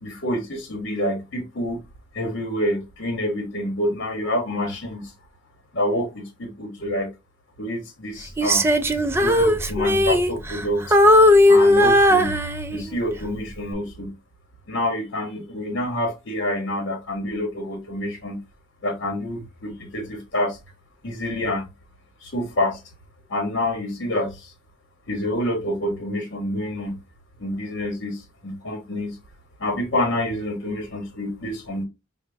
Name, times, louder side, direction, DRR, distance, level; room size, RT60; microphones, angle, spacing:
voice 1, 0.0-1.8 2.1-5.1 5.7-7.1 7.6-8.6 9.2-11.0 11.5-12.4 12.7-14.2 14.7-18.4 18.8-20.6 21.0-21.7 22.2-22.8 23.3-24.5 25.1-27.0 27.4-29.2 29.6-31.8, left 1 dB, 65° left, 1.0 m, -27 dB
Female singing, 8.4-10.7 10.9-13.0 13.5-13.7, left 1 dB, 15° right, 0.4 m, -17 dB
5.0 x 2.1 x 3.3 m
head